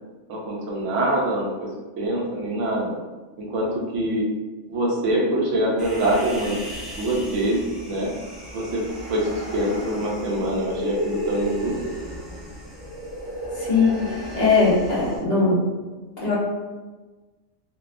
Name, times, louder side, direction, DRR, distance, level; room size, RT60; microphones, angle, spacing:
voice 1, 0.3-1.7 2.0-3.0 3.4-4.3 4.7-6.6 7.0-8.1 8.5-8.8 9.1-11.7, right 1 dB, 75° right, -2 dB, 1.0 m, -24 dB
Human voice, 5.8-15.2, right 1 dB, ahead, 0.3 m, -34 dB
voice 2, 13.6-14.1 14.3-15.6 16.2-16.3, left 4 dB, 55° left, -7 dB, 1.0 m, -20 dB
2.6 x 2.2 x 2.4 m, 1.2 s
omnidirectional pair, 1.3 m